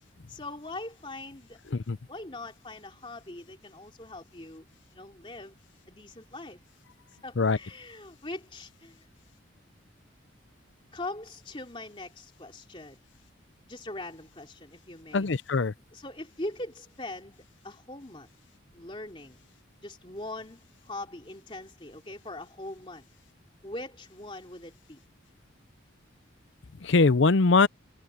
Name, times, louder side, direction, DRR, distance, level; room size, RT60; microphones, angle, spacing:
voice 1, 0.3-1.6 2.1-4.7 4.9-5.6 5.9-6.6 7.2-9.1 10.9-13.0 13.7-15.3 15.9-18.3 18.7-19.4 19.8-23.0 23.6-25.0, left 2 dB, 25° left, 3.2 m, -41 dB
voice 2, 15.1-15.7 26.8-27.7, left 3 dB, 70° left, 0.6 m, -22 dB
head